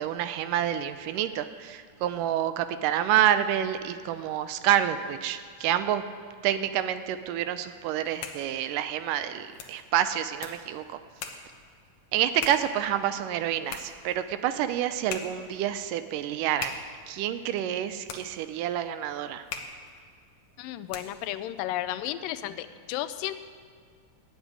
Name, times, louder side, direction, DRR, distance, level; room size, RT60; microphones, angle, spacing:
voice 1, 0.0-6.0 6.4-11.0 12.1-16.8 17.1-19.4, right 11 dB, 80° right, 11 dB, 2.2 m, -28 dB
sound 1, 7.9-21.4, left 6 dB, 65° left, 2.1 m, -43 dB
voice 2, 20.6-23.3, left 13 dB, 85° left, 12 dB, 2.3 m, -33 dB
12.5 x 7.4 x 9.5 m, 2.2 s
omnidirectional pair, 3.9 m